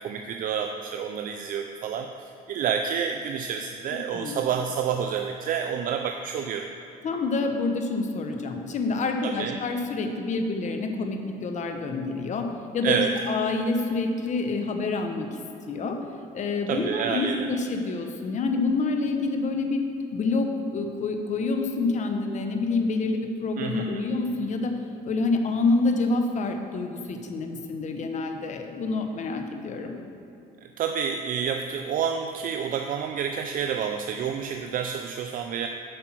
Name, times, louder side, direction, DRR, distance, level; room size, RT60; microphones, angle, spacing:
voice 1, 0.0-2.1 2.5-6.7 9.2-9.6 12.8-13.1 16.7-17.5 23.6-24.0 30.8-35.7, right 7 dB, 55° right, 5 dB, 0.4 m, -29 dB
voice 2, 7.0-12.5 12.7-13.0 13.3-15.3 15.7-16.0 16.3-19.8 20.1-24.7 25.0-29.9, left 3 dB, 45° left, 4 dB, 0.9 m, -27 dB
7.7 x 5.6 x 6.1 m, 2.8 s
cardioid pair, 110°, 17 cm